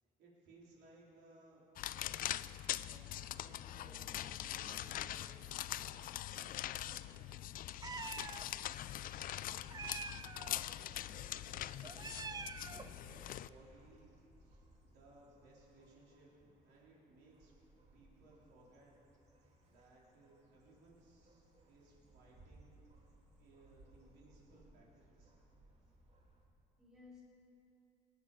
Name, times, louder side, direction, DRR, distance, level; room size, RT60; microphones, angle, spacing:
voice 1, 0.2-1.6 2.5-5.2 6.3-6.6 10.5-12.2 12.7-14.1 14.4-17.5 17.9-18.9 19.6-22.8 23.4-25.3, right 2 dB, 85° right, -4 dB, 4.0 m, -63 dB
sound 1, 1.8-13.5, left 13 dB, 55° left, 0.4 m, -43 dB
voice 2, 3.9-5.1 6.7-6.9 26.8-27.2, left 2 dB, 5° right, -6 dB, 4.3 m, -60 dB
Meow, 7.8-8.5 9.7-10.6 11.8-13.0, right 5 dB, 20° right, 0.6 m, -46 dB
sound 2, 10.8-26.4, right 2 dB, 40° right, 2.6 m, -66 dB
19.0 x 9.9 x 5.6 m, 2.8 s
cardioid pair, 110°, 17 cm